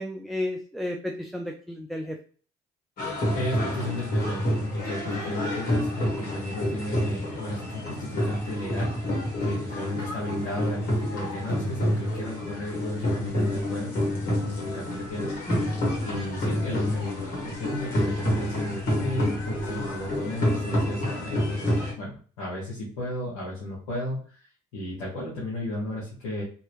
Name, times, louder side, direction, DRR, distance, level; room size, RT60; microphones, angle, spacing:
voice 1, 0.0-2.2 15.5-15.8, left 1 dB, ahead, 3 dB, 0.5 m, -32 dB
sound 1, 3.0-21.9, equal, 65° left, 1.6 m, -28 dB
voice 2, 3.3-8.9 9.4-15.5 16.0-24.5 24.7-26.4, left 1 dB, 90° left, -6 dB, 1.0 m, -34 dB
2.9 x 2.8 x 3.0 m, 0.41 s
hypercardioid pair, 60°, 17 cm